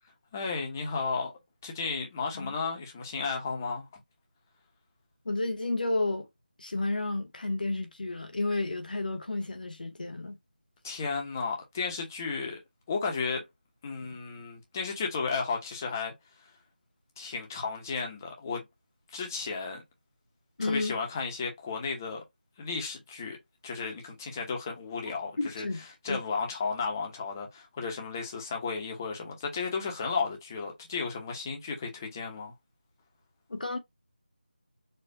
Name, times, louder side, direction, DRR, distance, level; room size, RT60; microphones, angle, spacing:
voice 1, 0.3-1.3 1.6-3.9 10.8-12.6 12.9-13.4 13.8-16.1 17.2-18.6 19.1-19.8 20.6-22.2 22.6-23.4 23.6-25.7 26.0-32.5, left 4 dB, 20° left, 0.8 m, -33 dB
voice 2, 5.2-6.3 6.6-10.4 20.6-20.9 25.4-26.2 33.5-33.8, left 2 dB, 60° left, 0.9 m, -31 dB
4.3 x 2.4 x 2.6 m
figure-of-eight pair, 165°, 5 cm